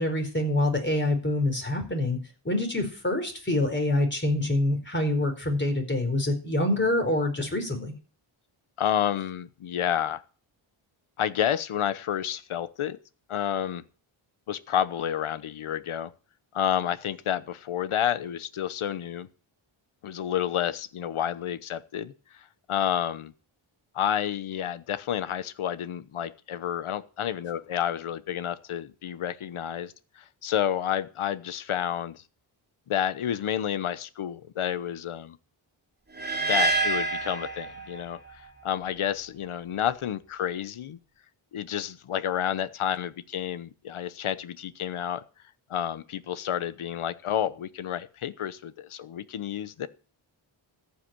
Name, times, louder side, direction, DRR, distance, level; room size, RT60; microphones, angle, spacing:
voice 1, 0.0-2.2 2.4-7.9, left 1 dB, 20° left, 4 dB, 4.5 m, -26 dB
voice 2, 8.8-10.2 11.2-13.0 13.3-13.8 14.5-16.1 16.5-19.3 20.0-23.3 23.9-32.2 32.9-35.4 36.5-41.0 41.5-45.2 45.7-49.9, left 10 dB, 75° left, 15 dB, 1.0 m, -30 dB
sound 1, 36.2-38.3, right 3 dB, 20° right, 2.9 m, -27 dB
14.5 x 5.8 x 9.0 m, 0.38 s
wide cardioid pair, 85°, 50 cm